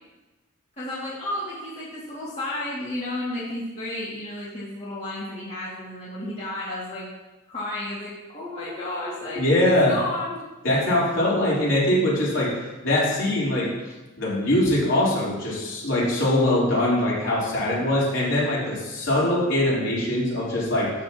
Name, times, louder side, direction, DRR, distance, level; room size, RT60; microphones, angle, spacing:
voice 1, 0.8-7.1 7.5-10.4, left 1 dB, 30° left, -9 dB, 2.4 m, -32 dB
voice 2, 9.4-9.9 10.6-12.5 12.8-13.7 14.2-20.9, left 1 dB, 65° left, -7 dB, 3.7 m, -22 dB
12.0 x 8.4 x 3.0 m, 1.1 s
head